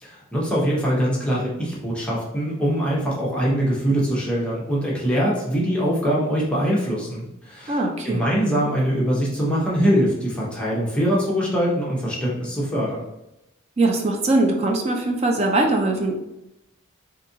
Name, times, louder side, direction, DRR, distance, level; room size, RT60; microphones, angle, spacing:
voice 1, 0.0-13.1, equal, 5° left, -6 dB, 0.8 m, -23 dB
voice 2, 7.7-8.2 13.8-16.2, right 2 dB, 30° right, 2 dB, 0.4 m, -21 dB
4.0 x 2.6 x 2.7 m, 0.90 s
head